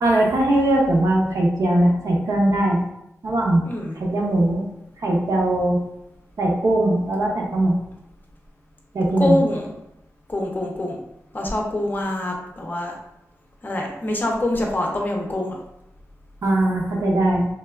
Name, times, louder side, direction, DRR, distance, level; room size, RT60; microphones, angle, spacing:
voice 1, 0.0-2.8 3.2-3.6 4.0-4.7 5.0-5.8 6.4-7.8 8.9-9.4 16.4-17.5, right 1 dB, 70° right, -1 dB, 0.6 m, -20 dB
voice 2, 3.6-4.0 9.2-9.7 10.3-11.0 11.3-12.9 13.6-15.6, left 1 dB, 35° left, 0 dB, 0.5 m, -25 dB
3.2 x 2.3 x 2.2 m, 0.85 s
wide cardioid pair, 120°, 6 cm